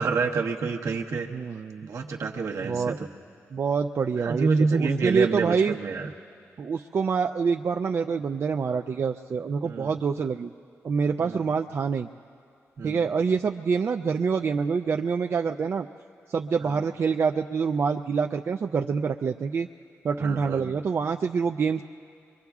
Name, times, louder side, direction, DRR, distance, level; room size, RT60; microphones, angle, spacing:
voice 1, 0.0-1.3 1.8-3.1 4.2-6.1 9.6-9.9 11.2-11.4 12.8-13.0 16.7-16.8 20.2-20.7, right 4 dB, 80° right, 1 dB, 1.0 m, -27 dB
voice 2, 1.3-1.9 2.6-3.0 3.5-5.8 6.6-10.5 10.8-12.1 12.8-15.9 16.3-19.7 20.0-21.8, right 5 dB, 55° right, 4 dB, 0.3 m, -26 dB
24.0 x 23.5 x 2.4 m, 2.3 s
cardioid pair, 95°, 5 cm